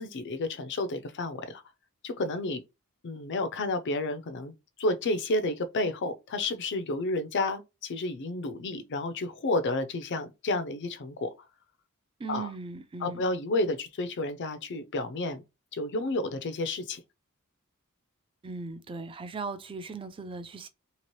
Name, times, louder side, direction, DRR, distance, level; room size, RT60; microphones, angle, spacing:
voice 1, 0.0-1.6 2.0-2.6 3.0-4.5 4.8-11.3 12.3-12.5 13.0-15.4 15.7-17.0, left 2 dB, 55° left, 0.5 m, -31 dB
voice 2, 12.2-13.2 18.4-20.7, right 4 dB, 25° right, 0.4 m, -38 dB
2.9 x 2.9 x 3.0 m
head